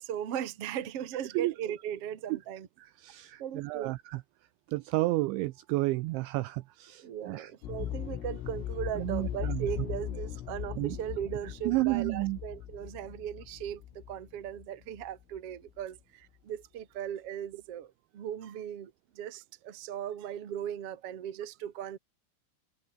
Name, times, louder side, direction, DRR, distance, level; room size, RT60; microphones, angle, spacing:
voice 1, 0.0-2.7 3.4-4.0 7.0-22.0, right 10 dB, 55° right, 1.7 m, -38 dB
voice 2, 3.0-4.2 4.7-7.5 9.0-9.7 10.8-11.0 11.7-12.4, right 20 dB, 85° right, 2.7 m, -31 dB
sound 1, 7.6-15.4 15.7-15.8, left 11 dB, 75° left, 4.8 m, -39 dB
omnidirectional pair, 5.9 m